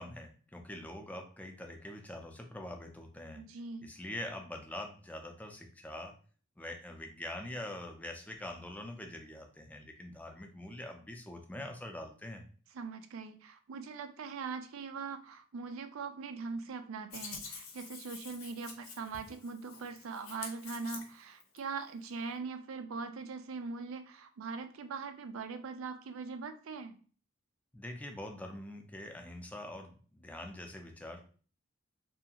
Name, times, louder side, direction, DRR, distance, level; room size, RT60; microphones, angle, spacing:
voice 1, 0.0-3.4 3.8-6.2 6.6-12.4 27.7-31.2, left 1 dB, 5° left, 3 dB, 0.4 m, -44 dB
voice 2, 3.4-3.9 12.7-27.0, right 4 dB, 75° right, 9 dB, 0.4 m, -41 dB
Hands, 17.1-21.6, left 5 dB, 75° left, 0.6 m, -47 dB
2.5 x 2.4 x 2.8 m, 0.41 s
head